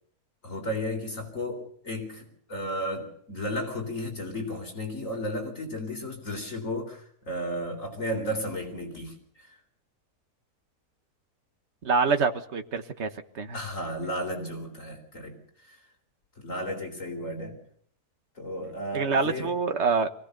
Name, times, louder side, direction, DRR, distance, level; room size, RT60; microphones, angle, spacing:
voice 1, 0.4-9.6 13.5-15.9 16.4-17.6 18.4-19.5, equal, 55° left, 3 dB, 4.3 m, -34 dB
voice 2, 11.8-13.1 13.3-13.6 18.9-20.1, right 4 dB, 45° right, 7 dB, 1.6 m, -26 dB
24.5 x 16.5 x 6.8 m, 0.64 s
omnidirectional pair, 1.6 m